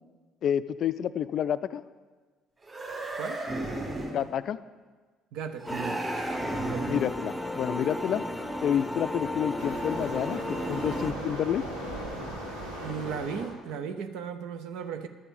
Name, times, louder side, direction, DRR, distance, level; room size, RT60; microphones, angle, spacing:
voice 1, 0.4-1.8 4.1-4.6 6.9-8.2 8.6-11.6, left 9 dB, 50° left, 15 dB, 0.4 m, -29 dB
sound 1, 2.6-4.2 5.6-7.2, right 2 dB, 30° right, 3.3 m, -34 dB
voice 2, 5.3-6.1 6.6-6.9 12.8-15.1, right 7 dB, 60° right, 8 dB, 0.7 m, -36 dB
sound 2, 5.7-11.1, left 1 dB, 5° left, 0.8 m, -34 dB
Waves surf, 9.6-13.6, right 1 dB, 85° right, 1.8 m, -38 dB
11.5 x 7.0 x 7.0 m, 1.4 s
figure-of-eight pair, 50°, 0 cm